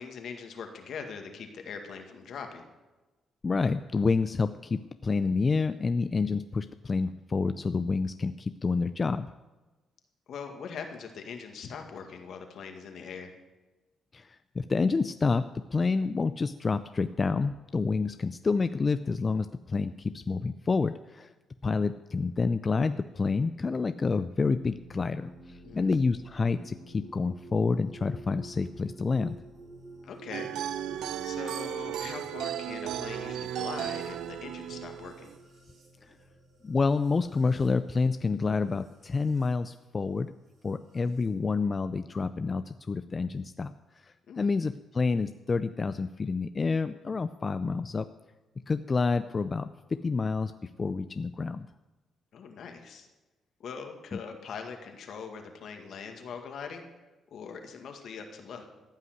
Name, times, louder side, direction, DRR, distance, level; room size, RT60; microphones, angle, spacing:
voice 1, 0.0-2.6 10.3-13.3 25.6-25.9 30.0-30.5 31.2-35.3 44.3-44.5 52.3-53.1 53.6-56.9 57.3-58.7, left 6 dB, 65° left, 5 dB, 1.9 m, -42 dB
voice 2, 3.4-9.3 14.1-21.3 21.6-29.4 36.0-36.2 36.6-40.3 40.6-48.1 48.7-49.7 50.0-51.7, left 4 dB, 35° left, 11 dB, 0.4 m, -28 dB
sound 1, 24.4-39.5 40.6-41.3, right 2 dB, 55° right, 5.5 m, -50 dB
sound 2, 30.3-35.4, right 10 dB, 80° right, 0.7 m, -35 dB
15.0 x 5.7 x 9.4 m, 1.2 s
cardioid pair, 90°, 0 cm